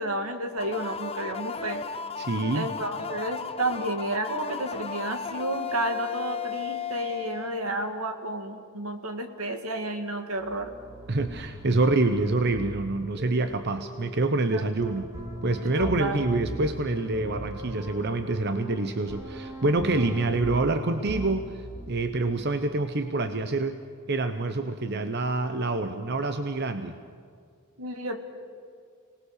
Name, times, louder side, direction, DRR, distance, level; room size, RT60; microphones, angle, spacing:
voice 1, 0.0-1.8 2.5-10.7 14.5-14.7 15.6-16.3 27.8-28.2, right 1 dB, 80° right, 6 dB, 2.3 m, -31 dB
sound 1, 0.6-8.2, left 6 dB, 25° left, 0.9 m, -35 dB
voice 2, 2.2-2.7 11.1-15.1 15.4-23.8 24.1-27.0, right 2 dB, 50° right, 8 dB, 0.9 m, -26 dB
sound 2, 10.4-22.5, right 1 dB, 15° right, 1.9 m, -39 dB
30.0 x 19.5 x 6.7 m, 2.1 s
head